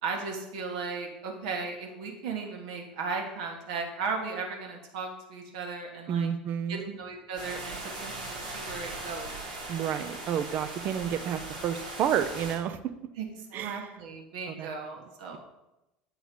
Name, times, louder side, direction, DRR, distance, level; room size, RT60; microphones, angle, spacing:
voice 1, 0.0-6.3 6.7-9.3 9.8-9.9 13.2-15.4, right 4 dB, 65° right, 2 dB, 1.3 m, -36 dB
voice 2, 6.1-6.9 9.7-12.8 13.5-13.9 14.5-14.7, right 9 dB, 45° right, 11 dB, 0.5 m, -30 dB
sound 1, 7.4-12.6, right 2 dB, 85° right, 1.8 m, -39 dB
8.0 x 3.9 x 4.6 m, 0.96 s
figure-of-eight pair, 70°, 4 cm